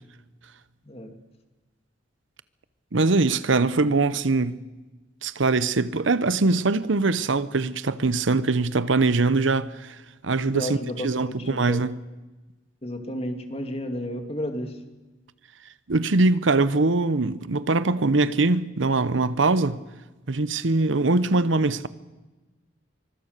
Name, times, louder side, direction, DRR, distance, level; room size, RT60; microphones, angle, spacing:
voice 1, 2.9-4.6 5.2-10.0 10.2-10.8 11.0-11.9 15.9-19.8 20.3-21.9, right 3 dB, 80° right, 0.9 m, -22 dB
voice 2, 10.4-11.8 12.8-14.7, left 1 dB, 30° left, 2.5 m, -32 dB
24.0 x 24.0 x 6.7 m
head